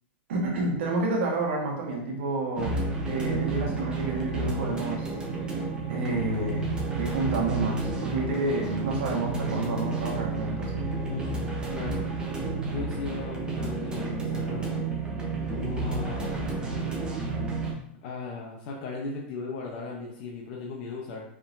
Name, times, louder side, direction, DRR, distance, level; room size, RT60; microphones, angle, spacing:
voice 1, 0.3-2.8 3.1-5.1 5.9-6.7 7.0-10.9, right 2 dB, 75° right, -1 dB, 1.5 m, -29 dB
sound 1, 2.6-17.7, right 3 dB, 15° right, 0.9 m, -31 dB
voice 2, 11.1-12.0 12.7-14.7 15.5-16.4 18.0-21.2, left 3 dB, 50° left, -2 dB, 0.8 m, -37 dB
4.7 x 3.7 x 2.6 m, 0.73 s
supercardioid pair, 145°, 6 cm